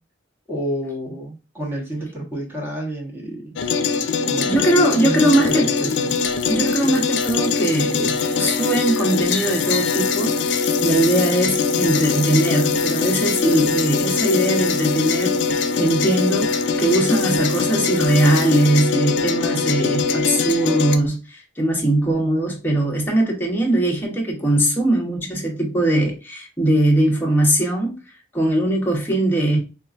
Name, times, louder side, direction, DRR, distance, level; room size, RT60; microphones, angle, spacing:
voice 1, 0.5-3.6 4.0-4.6 5.0-6.2, right 1 dB, 15° right, 1.1 m, -30 dB
sound 1, 3.6-21.0, left 5 dB, 75° left, 0.4 m, -22 dB
voice 2, 4.4-5.9 6.5-28.0 28.3-29.6, right 1 dB, 10° left, 0.9 m, -20 dB
4.4 x 2.4 x 2.4 m
head